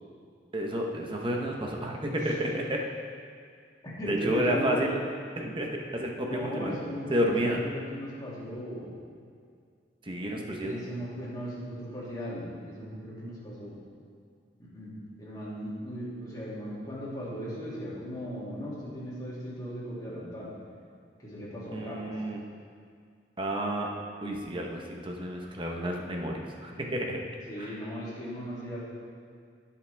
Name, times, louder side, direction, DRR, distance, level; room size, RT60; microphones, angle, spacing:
voice 1, 0.5-2.8 4.1-5.0 5.4-6.8 7.1-7.6 10.0-10.9 21.7-22.4 23.4-23.9 24.2-27.2 27.6-27.7, equal, 30° right, 1 dB, 0.9 m, -30 dB
voice 2, 3.8-5.0 6.2-8.9 10.6-13.8 14.6-20.5 21.2-22.1 27.5-28.8, equal, 20° left, -8 dB, 2.5 m, -37 dB
16.0 x 5.9 x 3.4 m, 2.2 s
head